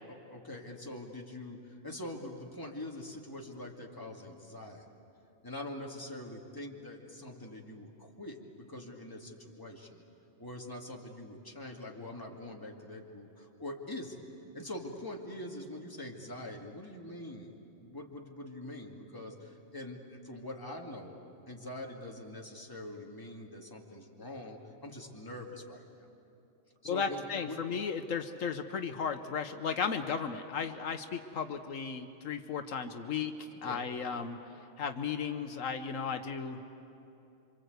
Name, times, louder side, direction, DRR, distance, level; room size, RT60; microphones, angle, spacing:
voice 1, 0.1-4.9 5.4-10.0 10.4-14.2 14.5-25.8 26.8-27.6 33.6-33.8, left 1 dB, 15° left, -1 dB, 2.4 m, -44 dB
voice 2, 26.9-34.4 34.8-36.6, left 6 dB, 80° left, 7 dB, 1.4 m, -35 dB
27.5 x 25.5 x 8.1 m, 2.8 s
omnidirectional pair, 1.4 m